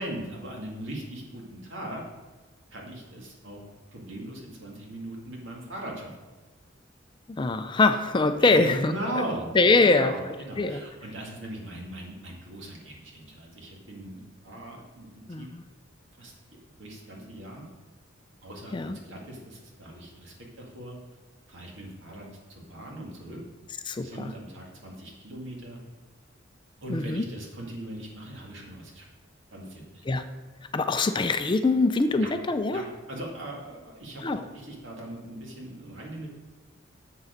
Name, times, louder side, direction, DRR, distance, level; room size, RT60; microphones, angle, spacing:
voice 1, 0.0-2.0 2.7-3.6 3.9-6.1 8.4-15.5 16.2-16.3 16.8-17.7 18.4-21.0 21.5-23.4 24.0-25.8 26.8-29.1 29.5-30.0 32.2-32.3 32.7-36.3, right 1 dB, 75° right, -1 dB, 2.1 m, -39 dB
voice 2, 7.4-8.9 9.5-10.1 10.6-10.8 15.3-15.6 18.7-19.0 23.9-24.3 26.9-27.2 30.1-30.2 30.7-32.8 34.2-34.4, left 3 dB, 25° left, 9 dB, 0.4 m, -23 dB
7.1 x 6.7 x 5.1 m, 1.3 s
head